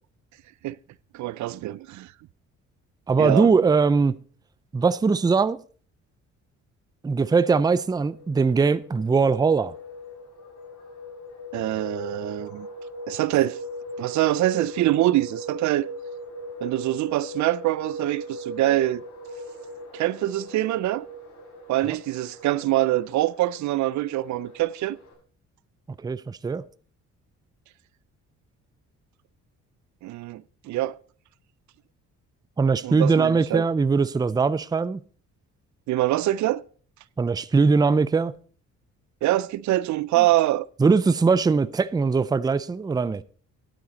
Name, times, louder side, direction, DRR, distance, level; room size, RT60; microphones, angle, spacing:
voice 1, 1.1-2.1 3.2-3.5 11.5-12.7 13.1-13.6 14.0-15.9 16.6-19.0 19.9-21.1 21.7-25.0 30.0-31.0 32.8-33.6 35.9-36.6 39.2-40.7, right 15 dB, 70° right, 0.4 m, -24 dB
voice 2, 3.1-4.2 4.7-5.6 7.0-9.7 21.8-22.0 26.0-26.6 32.6-35.0 37.2-38.3 40.8-43.2, right 4 dB, 15° right, 0.4 m, -21 dB
sound 1, 7.4-25.1, equal, 70° left, 5.4 m, -39 dB
12.0 x 9.0 x 4.0 m
cardioid pair, 90°, 30 cm